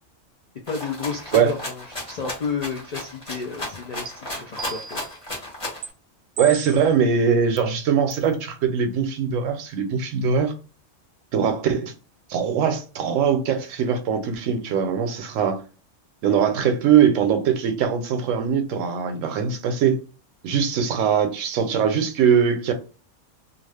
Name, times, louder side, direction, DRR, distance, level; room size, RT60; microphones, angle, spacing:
voice 1, 0.7-5.0, left 5 dB, 80° left, 0.3 m, -31 dB
Rattle (instrument), 0.7-5.9, left 1 dB, 30° left, 0.9 m, -34 dB
sound 1, 4.1-4.2 4.6-5.2 5.8-5.9 6.4-6.9 7.6-7.7 8.1-8.3, right 6 dB, 60° right, 0.7 m, -36 dB
voice 2, 6.4-10.5 11.3-11.9 12.3-15.6 16.2-20.0 20.4-22.7, right 7 dB, 85° right, 1.0 m, -21 dB
2.4 x 2.3 x 3.3 m
omnidirectional pair, 1.3 m